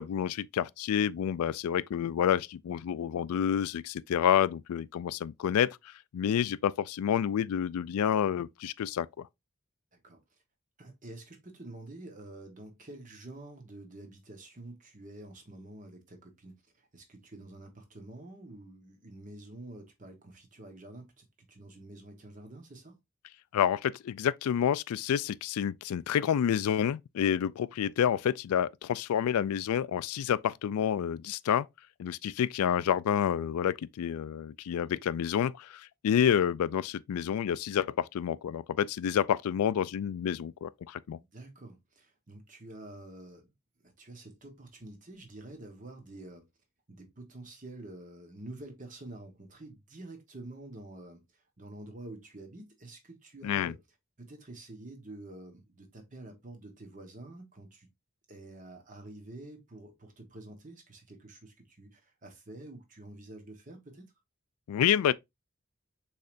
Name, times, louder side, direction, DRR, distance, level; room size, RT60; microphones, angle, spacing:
voice 1, 0.0-9.3 23.5-31.7 32.0-41.2 53.4-53.7 64.7-65.1, left 9 dB, 90° left, 0.3 m, -29 dB
voice 2, 10.8-23.0 41.3-43.5 43.8-46.4 46.9-53.8 54.2-57.9 58.3-64.1, right 2 dB, 35° right, 1.1 m, -48 dB
6.4 x 3.3 x 2.5 m
head